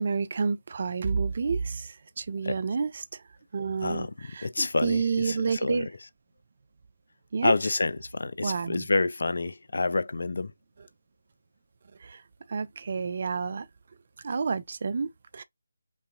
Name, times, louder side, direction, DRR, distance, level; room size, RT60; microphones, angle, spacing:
voice 1, 0.0-3.2 3.5-4.1 4.3-5.9 7.3-7.5 8.4-8.9 12.0-12.2 12.5-13.7 14.2-15.4, right 5 dB, 40° right, 0.4 m, -29 dB
voice 2, 3.8-4.1 4.4-5.9 7.4-10.5, left 3 dB, 55° left, 0.4 m, -28 dB
5.4 x 2.6 x 2.5 m
figure-of-eight pair, 155°, 0 cm